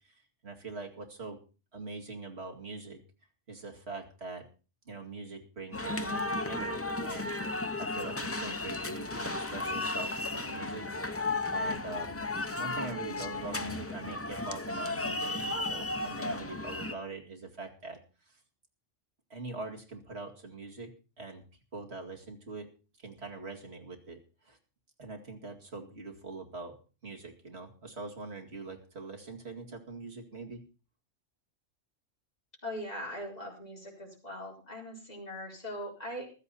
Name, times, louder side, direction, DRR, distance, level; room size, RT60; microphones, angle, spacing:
voice 1, 0.0-1.4 1.7-3.0 3.5-4.5 4.9-7.3 7.8-10.9 11.5-18.4 19.3-21.4 21.7-22.7 23.0-24.6 25.0-30.6, right 3 dB, 60° right, 1 dB, 2.6 m, -43 dB
sound 1, 5.7-16.9, left 2 dB, 15° left, 0.5 m, -34 dB
voice 2, 32.6-36.3, equal, 35° left, -3 dB, 4.7 m, -40 dB
15.0 x 13.0 x 4.2 m, 0.34 s
omnidirectional pair, 1.3 m